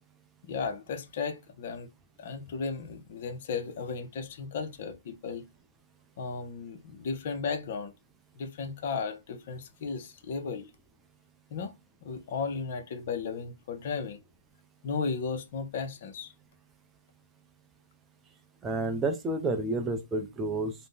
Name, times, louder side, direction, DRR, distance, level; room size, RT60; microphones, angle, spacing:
voice 1, 0.4-1.9 2.2-5.5 6.2-7.9 8.4-10.7 11.5-11.7 12.0-14.2 14.8-16.3, left 5 dB, 50° left, 0.6 m, -35 dB
voice 2, 18.6-20.7, right 2 dB, 15° right, 0.5 m, -30 dB
2.5 x 2.0 x 3.5 m
hypercardioid pair, 135°, 0 cm